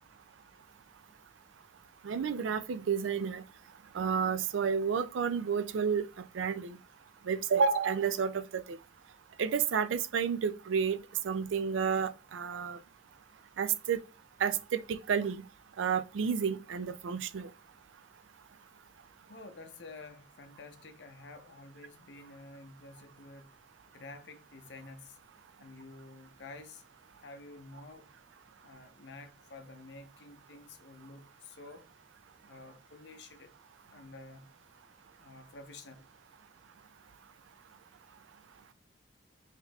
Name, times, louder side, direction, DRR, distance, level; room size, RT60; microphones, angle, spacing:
voice 1, 2.0-3.4 3.9-6.1 6.3-6.8 7.3-8.8 9.4-11.0 11.2-12.8 13.6-14.0 14.4-15.4 15.8-17.5, right 6 dB, 90° right, 0.4 m, -30 dB
voice 2, 19.3-23.6 23.9-25.2 25.6-26.8 27.2-28.1 28.6-31.9 32.4-33.6 33.9-34.6 35.2-36.1, left 3 dB, 70° left, 0.6 m, -50 dB
5.7 x 2.9 x 2.3 m
head